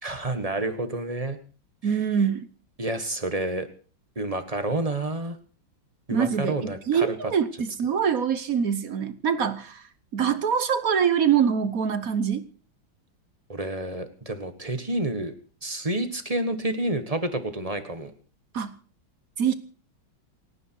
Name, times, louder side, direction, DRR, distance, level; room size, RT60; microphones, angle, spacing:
voice 1, 0.0-1.4 1.8-2.0 2.8-3.7 4.1-5.4 6.1-7.1 13.5-15.3 15.6-18.1, right 2 dB, 20° right, 8 dB, 1.5 m, -29 dB
voice 2, 1.8-2.5 6.1-12.5 18.5-18.7 19.4-19.5, right 7 dB, 50° right, 12 dB, 1.2 m, -24 dB
28.5 x 10.0 x 4.7 m, 0.40 s
omnidirectional pair, 2.3 m